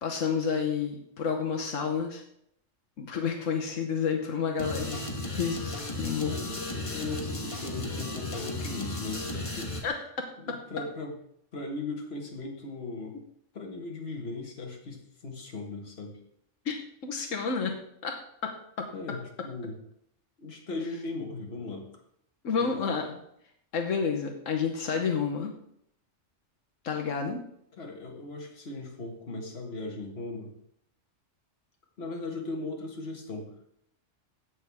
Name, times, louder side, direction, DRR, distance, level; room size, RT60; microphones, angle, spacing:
voice 1, 0.0-2.2 3.0-6.4 9.8-10.6 16.6-18.9 22.4-23.2 23.7-25.5 26.8-27.4, left 6 dB, 85° left, 2 dB, 1.4 m, -30 dB
sound 1, 4.6-9.8, left 2 dB, 25° left, 1.4 m, -35 dB
voice 2, 6.2-9.7 10.4-11.1 11.5-13.2 13.5-16.2 18.9-19.8 20.4-21.9 22.6-22.7 27.8-30.5 32.0-33.5, left 3 dB, 55° left, 1 dB, 1.9 m, -38 dB
16.0 x 6.3 x 3.6 m, 0.72 s
omnidirectional pair, 1.3 m